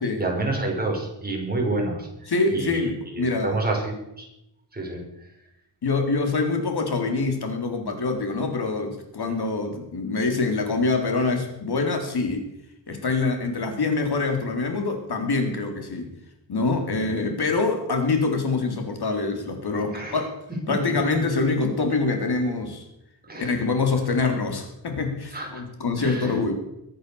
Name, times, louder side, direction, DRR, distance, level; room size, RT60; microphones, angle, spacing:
voice 1, 0.2-2.1 2.5-4.3 4.7-5.0 16.9-17.1 19.9-20.2 23.3-23.5 25.3-25.6 26.0-26.3, right 2 dB, 20° right, 0 dB, 5.7 m, -28 dB
voice 2, 2.3-3.6 5.8-12.4 12.9-16.1 16.5-20.4 20.7-22.8 23.4-26.5, left 3 dB, 60° left, 4 dB, 3.9 m, -25 dB
22.5 x 8.6 x 7.2 m, 0.84 s
wide cardioid pair, 125°, 43 cm